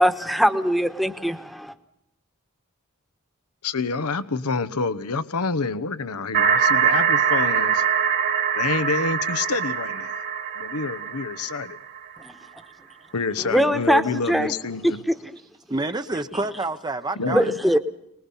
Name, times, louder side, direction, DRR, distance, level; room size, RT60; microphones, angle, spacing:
voice 1, 0.0-1.7 12.2-12.3 13.5-14.0 14.3-14.5 17.3-17.8, equal, ahead, 9 dB, 1.2 m, -21 dB
voice 2, 3.6-7.9 8.5-10.2 10.6-11.8 13.1-15.0 17.2-17.6, left 4 dB, 85° left, 14 dB, 1.0 m, -27 dB
sound 1, 6.3-12.0, right 7 dB, 50° right, 2.0 m, -23 dB
voice 3, 15.7-17.8, right 2 dB, 20° right, 9 dB, 0.7 m, -28 dB
24.0 x 20.5 x 5.6 m, 0.78 s
head